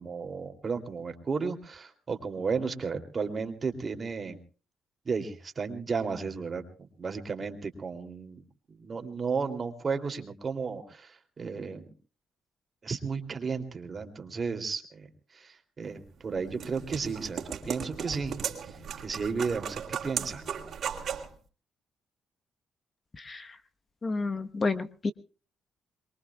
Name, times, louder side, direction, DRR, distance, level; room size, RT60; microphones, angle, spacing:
voice 1, 0.0-4.4 5.0-8.4 8.7-11.9 12.8-15.1 15.3-20.4, right 5 dB, 35° right, 7 dB, 2.9 m, -34 dB
sound 1, 16.1-21.3, right 7 dB, 60° right, 3.0 m, -37 dB
voice 2, 23.2-23.5 24.0-25.1, left 3 dB, 30° left, 9 dB, 1.1 m, -30 dB
23.0 x 23.0 x 2.3 m, 0.37 s
cardioid pair, 90°, 0 cm